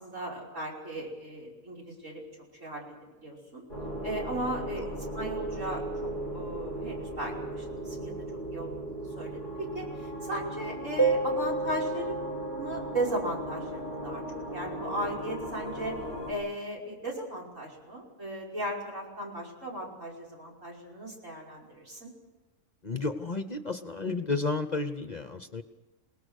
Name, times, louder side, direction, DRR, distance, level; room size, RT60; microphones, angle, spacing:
voice 1, 0.0-2.2 2.6-3.6 4.0-8.1 8.5-12.2 12.6-14.2 14.5-16.0 16.3-22.1, right 1 dB, 70° right, -2 dB, 6.1 m, -36 dB
sound 1, 3.7-16.3, right 1 dB, 40° right, 5.5 m, -37 dB
sound 2, 11.0-14.3, right 3 dB, 10° left, 1.7 m, -31 dB
voice 2, 22.8-25.6, left 3 dB, 35° left, 9 dB, 0.9 m, -32 dB
28.0 x 19.5 x 6.4 m, 1.2 s
omnidirectional pair, 1.4 m